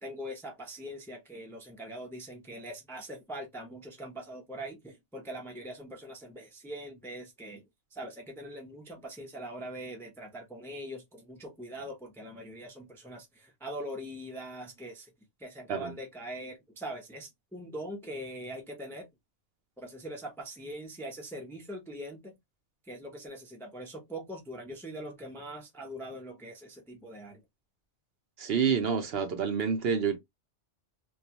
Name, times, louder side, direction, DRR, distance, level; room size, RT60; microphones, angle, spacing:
voice 1, 0.0-7.6 7.9-15.1 15.4-19.1 19.8-22.3 22.9-27.4, right 1 dB, 5° left, 0.5 m, -42 dB
voice 2, 28.4-30.2, right 6 dB, 65° right, 0.8 m, -28 dB
2.3 x 2.3 x 2.7 m
omnidirectional pair, 1.2 m